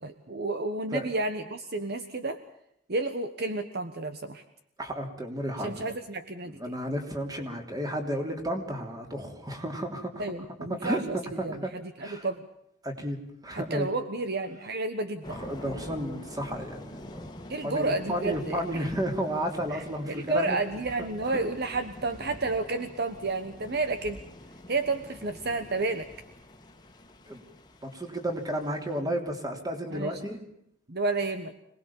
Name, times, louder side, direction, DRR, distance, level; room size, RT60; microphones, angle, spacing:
voice 1, 0.0-2.4 2.9-4.4 5.6-6.7 10.2-11.2 11.4-11.6 12.0-12.4 13.5-15.4 17.5-18.8 19.7-24.2 24.7-26.1 29.9-30.2 30.9-31.5, right 3 dB, 50° right, 9 dB, 1.3 m, -31 dB
voice 2, 4.8-5.9 6.5-10.2 10.7-11.7 12.0-12.3 12.8-13.2 13.4-13.9 15.3-17.2 17.6-20.6 21.0-21.4 27.3-27.4 27.8-30.4, equal, 20° right, 4 dB, 3.3 m, -32 dB
Thunder / Rain, 15.2-29.0, left 1 dB, 20° left, 1.8 m, -46 dB
26.5 x 19.5 x 7.2 m, 0.74 s
head